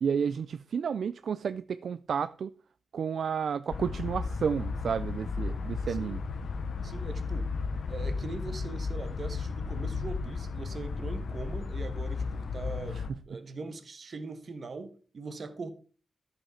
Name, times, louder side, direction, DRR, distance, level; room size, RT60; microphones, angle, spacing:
voice 1, 0.0-2.5 2.9-6.2 12.9-13.0, right 7 dB, 65° right, 0.3 m, -31 dB
sound 1, 3.7-13.1, left 4 dB, 60° left, 0.8 m, -34 dB
voice 2, 6.8-7.5 7.9-15.7, right 3 dB, 45° right, 1.2 m, -41 dB
13.0 x 5.7 x 4.3 m
wide cardioid pair, 160°, 0 cm